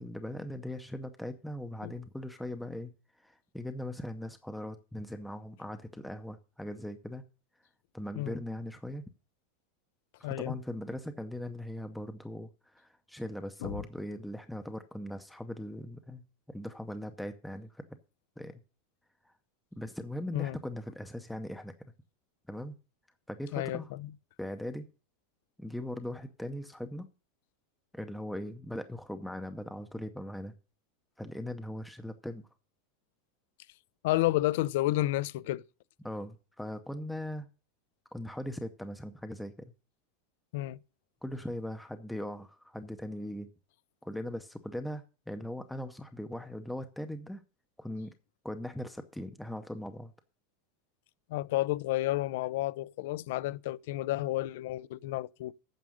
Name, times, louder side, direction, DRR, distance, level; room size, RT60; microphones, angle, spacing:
voice 1, 0.0-2.9 3.2-7.2 7.9-9.0 10.2-17.8 18.4-18.6 19.2-19.3 19.7-21.7 22.5-22.8 23.3-23.9 24.4-24.9 25.6-27.1 27.9-30.5 31.2-32.5 36.0-37.5 38.1-39.7 41.2-43.5 44.0-47.4 47.8-48.1 48.4-50.1, left 1 dB, ahead, 0.6 m, -40 dB
voice 2, 10.2-10.6 13.6-13.8 20.3-20.6 23.5-24.1 34.0-35.6 40.5-40.8 51.3-55.5, left 16 dB, 60° left, 0.4 m, -31 dB
9.2 x 6.1 x 6.2 m
supercardioid pair, 165°, 0 cm